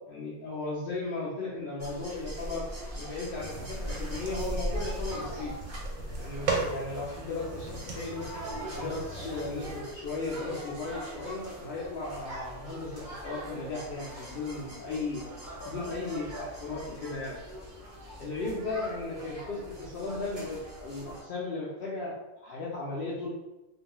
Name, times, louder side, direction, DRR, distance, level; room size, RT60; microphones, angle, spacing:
voice 1, 0.1-2.7 2.9-5.5 6.2-8.2 8.7-15.2 15.6-17.4 18.2-23.3, left 3 dB, 85° left, -5 dB, 0.5 m, -36 dB
sound 1, 1.8-21.2, equal, 40° right, 1.0 m, -41 dB
sound 2, 3.4-9.8, right 4 dB, 75° right, 1.1 m, -38 dB
2.5 x 2.2 x 2.9 m, 1.0 s
omnidirectional pair, 1.5 m